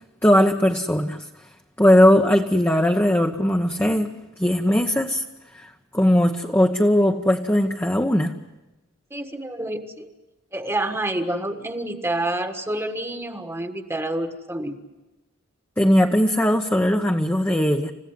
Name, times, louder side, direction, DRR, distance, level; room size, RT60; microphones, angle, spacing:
voice 1, 0.2-1.2 1.8-5.2 5.6-5.7 5.9-8.4 15.8-17.9, left 1 dB, 10° left, 2 dB, 1.0 m, -19 dB
voice 2, 9.1-10.1 10.5-14.8, right 1 dB, 15° right, 6 dB, 1.5 m, -28 dB
29.5 x 16.0 x 9.7 m, 1.0 s
head